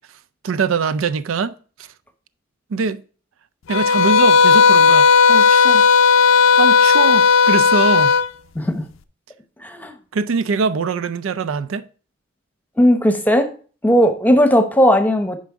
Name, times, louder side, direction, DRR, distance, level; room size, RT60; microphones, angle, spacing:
voice 1, 0.4-1.9 2.7-3.0 3.7-5.9 6.6-8.2 10.1-11.8, right 5 dB, 85° right, 0.4 m, -22 dB
sound 1, 3.7-8.3, left 6 dB, 85° left, 0.5 m, -13 dB
voice 2, 8.5-8.9 9.6-9.9 12.8-13.5 13.8-15.4, equal, 10° left, 0.8 m, -16 dB
9.3 x 5.1 x 3.5 m
head